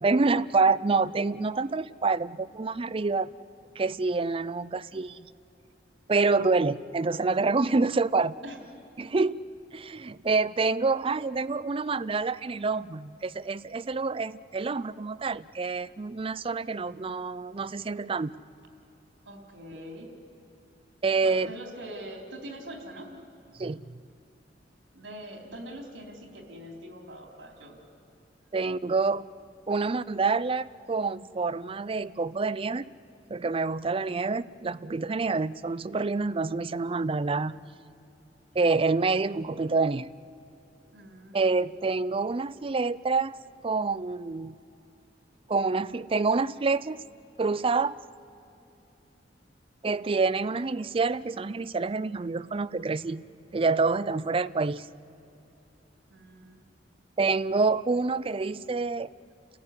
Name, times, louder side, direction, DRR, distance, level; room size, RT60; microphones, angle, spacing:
voice 1, 0.0-3.3 3.8-5.3 6.1-8.4 9.0-9.4 9.7-18.4 21.0-21.5 23.6-23.9 28.5-29.3 29.7-32.9 33.3-37.6 38.5-40.1 41.3-43.4 43.6-44.6 45.5-47.0 47.4-47.9 49.8-53.2 53.5-54.9 57.2-59.1, right 4 dB, 30° right, 16 dB, 0.5 m, -27 dB
voice 2, 19.3-20.1 21.2-23.1 24.9-27.8 33.8-34.2 40.9-41.4 56.1-56.6, right 1 dB, 85° right, 3 dB, 3.6 m, -43 dB
30.0 x 15.0 x 9.8 m, 2.8 s
head